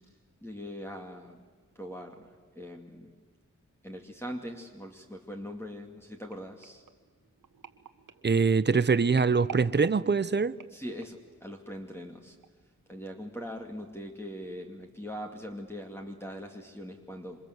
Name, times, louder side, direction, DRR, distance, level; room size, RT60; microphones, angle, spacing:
voice 1, 0.4-1.5 1.8-2.3 2.5-3.1 3.8-6.8 10.7-12.4 12.9-17.4, equal, 5° left, 2.4 m, -41 dB
sound 1, 6.3-11.3 11.9-12.2 12.4-12.5, right 7 dB, 75° right, 1.5 m, -49 dB
voice 2, 8.2-10.5, right 5 dB, 35° right, 0.8 m, -24 dB
27.5 x 25.5 x 8.0 m
wide cardioid pair, 90°, 32 cm